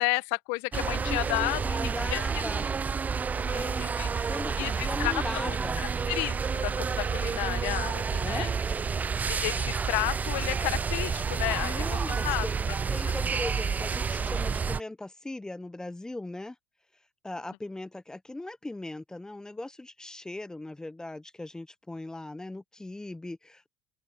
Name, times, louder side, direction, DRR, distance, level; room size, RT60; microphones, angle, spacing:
voice 1, 0.0-1.8 2.1-2.4 3.3-4.3 4.6-8.5 9.3-12.5, left 30 dB, 60° left, 1.6 m, -32 dB
sound 1, 0.7-14.8, right 5 dB, 20° right, 0.5 m, -29 dB
voice 2, 1.0-2.7 3.5-3.8 4.3-5.8 8.2-8.5 11.6-12.6 12.9-16.6 17.2-23.7, left 2 dB, 10° left, 1.1 m, -39 dB
open air
hypercardioid pair, 75°, 7 cm